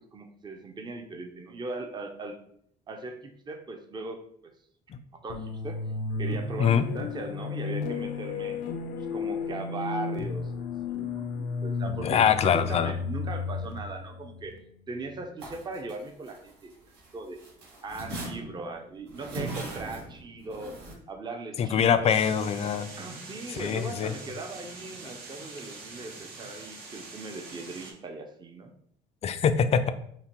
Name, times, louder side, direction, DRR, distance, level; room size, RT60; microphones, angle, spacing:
voice 1, 0.1-2.4 2.9-4.2 5.2-5.8 6.2-8.6 9.0-14.5 14.9-16.7 17.1-17.4 17.8-20.8 21.1-22.3 23.0-28.7, right 3 dB, 25° right, 4 dB, 0.6 m, -39 dB
sound 1, 5.3-15.2, left 4 dB, 90° left, 0.6 m, -33 dB
voice 2, 12.0-12.9 21.6-22.9 23.5-24.1 29.2-29.9, left 7 dB, 40° left, 10 dB, 0.3 m, -24 dB
sound 2, 15.4-17.1 17.4-20.9, right 2 dB, 85° right, 1.5 m, -39 dB
sound 3, 22.1-27.9, right 3 dB, 65° right, 0.9 m, -44 dB
5.7 x 2.2 x 2.9 m, 0.67 s
cardioid pair, 110°, 17 cm